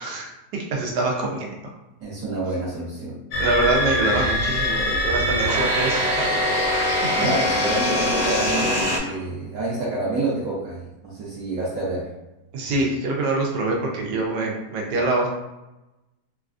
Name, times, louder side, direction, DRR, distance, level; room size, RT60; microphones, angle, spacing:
voice 1, 0.0-1.6 3.4-6.4 12.5-15.3, right 2 dB, 85° right, -1 dB, 1.3 m, -25 dB
voice 2, 2.0-3.2 7.2-12.1, right 2 dB, 65° right, -7 dB, 1.1 m, -28 dB
sound 1, 3.3-9.0, left 1 dB, 75° left, 0.5 m, -22 dB
3.1 x 2.3 x 2.4 m, 1.0 s
omnidirectional pair, 1.8 m